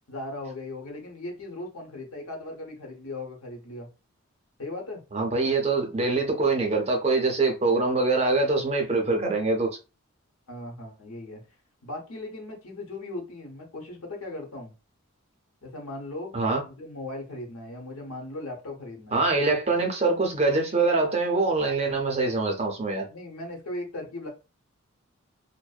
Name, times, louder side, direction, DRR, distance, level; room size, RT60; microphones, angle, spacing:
voice 1, 0.1-3.9 4.6-5.0 10.5-11.4 11.8-14.7 15.6-16.3 16.6-19.3 23.1-24.3, left 2 dB, 85° left, 0.9 m, -38 dB
voice 2, 5.1-9.8 16.3-16.6 19.1-23.1, right 3 dB, 30° right, 0.5 m, -24 dB
2.5 x 2.1 x 2.3 m
head